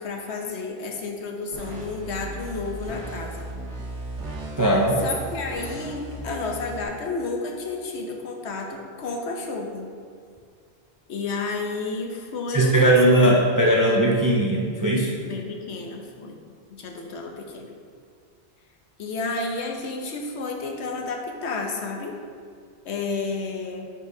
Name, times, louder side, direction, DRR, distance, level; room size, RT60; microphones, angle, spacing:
voice 1, 0.0-3.5 5.0-9.9 11.1-13.8 15.2-16.4 16.7-17.7 19.0-22.2 22.8-23.9, left 3 dB, 75° left, 2 dB, 1.0 m, -31 dB
sound 1, 1.5-6.8, right 1 dB, 75° right, 1.3 m, -36 dB
voice 2, 4.6-5.0 12.5-15.1, right 1 dB, 30° right, -2 dB, 0.3 m, -19 dB
9.6 x 4.2 x 2.7 m, 2.1 s
omnidirectional pair, 1.2 m